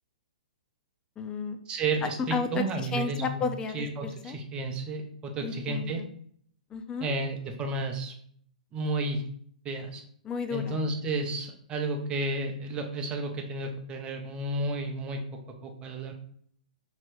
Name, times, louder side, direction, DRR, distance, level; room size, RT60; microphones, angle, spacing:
voice 1, 1.2-1.6 2.0-4.4 5.4-6.1 6.7-7.1 10.2-10.8, left 5 dB, 20° left, 8 dB, 0.4 m, -33 dB
voice 2, 1.7-3.4 3.7-6.0 7.0-8.1 8.7-9.2 9.6-10.0 10.5-15.3 15.6-16.1, right 2 dB, 20° right, 4 dB, 0.7 m, -32 dB
3.1 x 2.8 x 4.5 m, 0.62 s
hypercardioid pair, 130°, 5 cm